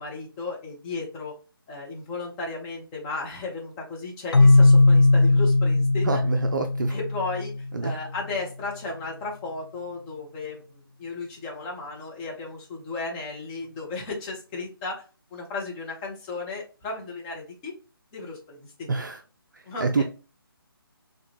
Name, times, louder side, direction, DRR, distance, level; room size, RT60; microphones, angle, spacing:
voice 1, 0.0-1.4 1.7-6.2 6.9-7.5 7.8-15.0 15.3-17.7 18.1-18.9 19.7-20.0, left 3 dB, 10° left, -2 dB, 0.6 m, -35 dB
Keyboard (musical), 4.3-8.0, left 2 dB, 70° left, 0.5 m, -19 dB
voice 2, 6.0-7.0 7.7-7.9 18.9-19.2 19.8-20.0, right 4 dB, 55° right, 5 dB, 0.4 m, -26 dB
4.7 x 2.2 x 2.8 m, 0.34 s
figure-of-eight pair, 145°, 12 cm